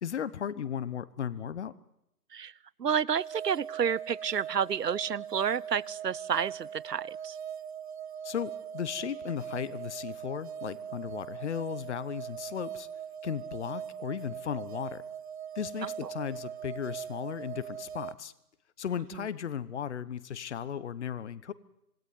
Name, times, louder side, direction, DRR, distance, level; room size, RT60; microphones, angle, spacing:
voice 1, 0.0-1.7 8.2-12.9 13.2-15.0 15.5-18.3 18.8-21.5, left 8 dB, 45° left, 17 dB, 1.2 m, -36 dB
voice 2, 2.8-7.4 15.8-16.1 19.1-19.2, right 7 dB, 90° right, 25 dB, 0.9 m, -30 dB
sound 1, 3.2-18.1, right 8 dB, 45° right, 1.0 m, -41 dB
26.0 x 19.5 x 9.7 m, 0.82 s
hypercardioid pair, 150°, 47 cm